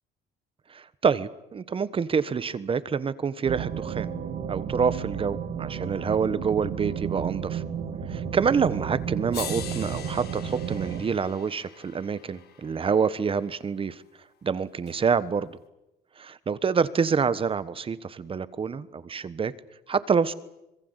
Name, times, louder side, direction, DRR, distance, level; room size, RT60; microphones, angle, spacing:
voice 1, 0.7-4.1 4.5-7.6 8.1-14.0 14.4-15.6 16.2-19.5 19.9-20.3, right 6 dB, 30° right, 16 dB, 1.3 m, -27 dB
sound 1, 3.4-11.0, right 8 dB, 65° right, 3.3 m, -32 dB
sound 2, 8.7-8.8 9.3-13.5 14.9-15.0, left 10 dB, 70° left, 3.3 m, -42 dB
26.0 x 22.0 x 8.2 m, 0.89 s
cardioid pair, 110°, 17 cm